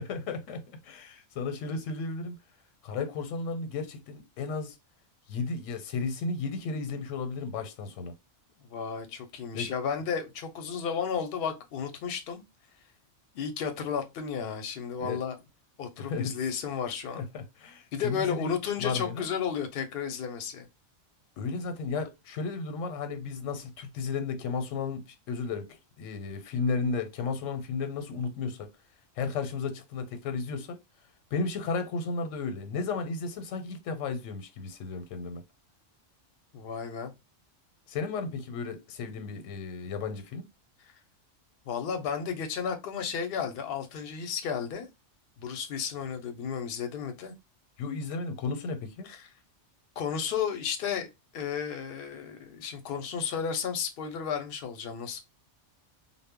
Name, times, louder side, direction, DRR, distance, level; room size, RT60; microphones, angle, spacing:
voice 1, 0.0-2.4 2.8-4.8 5.3-8.1 9.5-9.7 15.0-15.2 16.0-16.4 17.2-18.5 18.8-19.3 21.4-25.7 26.0-28.7 29.2-30.8 31.3-35.4 37.9-40.4 47.8-49.1, left 4 dB, 90° left, 0.9 m, -34 dB
voice 2, 8.7-12.4 13.3-15.3 15.8-17.2 17.9-20.7 36.5-37.1 41.7-44.9 45.4-47.3 49.1-49.2 50.0-51.1 51.3-55.2, left 7 dB, 60° left, 0.7 m, -33 dB
2.0 x 2.0 x 3.5 m
omnidirectional pair, 1.3 m